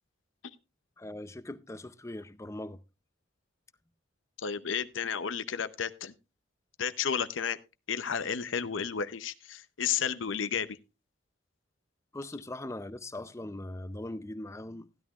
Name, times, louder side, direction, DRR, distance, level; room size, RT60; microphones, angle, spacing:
voice 1, 1.0-2.8 12.1-15.0, left 1 dB, 15° left, 0.5 m, -40 dB
voice 2, 4.4-6.1 6.8-7.6 7.9-10.8, left 7 dB, 80° left, 0.7 m, -32 dB
16.0 x 11.0 x 2.4 m
head